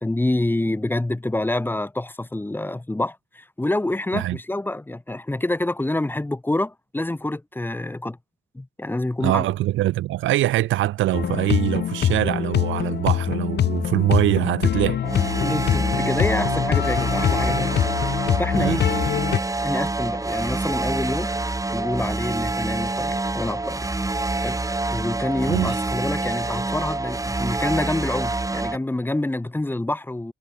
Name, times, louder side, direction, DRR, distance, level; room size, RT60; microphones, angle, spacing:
voice 1, 0.0-8.2 8.5-9.4 15.4-18.8 19.6-21.3 21.7-23.9 24.4-24.6 24.9-30.3, left 2 dB, 10° left, 1.2 m, -27 dB
voice 2, 9.2-15.0 18.6-18.8 25.5-25.8, right 15 dB, 80° right, 0.7 m, -23 dB
sound 1, 11.1-19.4, left 9 dB, 60° left, 1.4 m, -24 dB
sound 2, 15.0-28.8, right 2 dB, 15° right, 3.5 m, -26 dB
cardioid pair, 90°, 20 cm